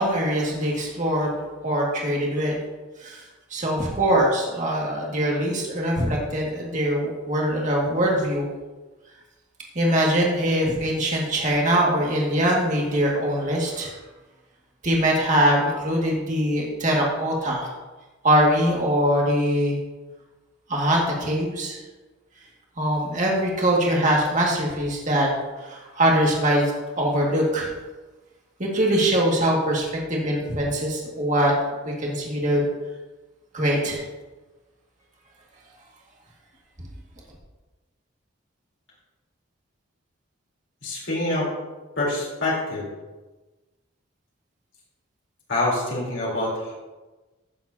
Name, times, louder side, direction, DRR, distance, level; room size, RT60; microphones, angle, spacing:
voice 1, 0.0-1.4 1.6-2.6 3.0-3.2 3.5-8.5 9.8-13.9 14.8-17.7 18.2-19.8 20.7-21.8 22.8-25.3 25.6-27.7 28.6-31.5 31.9-32.7 33.5-34.0, right 1 dB, 35° right, -2 dB, 2.0 m, -22 dB
voice 2, 40.8-41.5 42.0-42.9 45.5-46.7, left 2 dB, 60° left, -6 dB, 3.6 m, -26 dB
15.5 x 7.7 x 2.8 m, 1.2 s
head